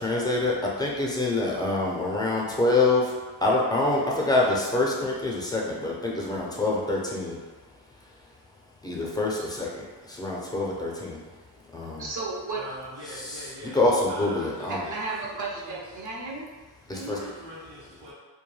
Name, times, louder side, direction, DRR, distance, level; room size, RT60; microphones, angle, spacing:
voice 1, 0.0-12.1 13.2-14.9 16.9-17.2, left 2 dB, 10° left, -4 dB, 0.5 m, -27 dB
voice 2, 12.0-12.6 14.7-16.5 16.9-17.3, right 3 dB, 45° right, -3 dB, 0.7 m, -34 dB
voice 3, 12.5-15.2 15.6-16.0 16.9-18.1, equal, 75° right, -9 dB, 0.9 m, -42 dB
2.2 x 2.2 x 3.1 m, 1.4 s
cardioid pair, 85°, 43 cm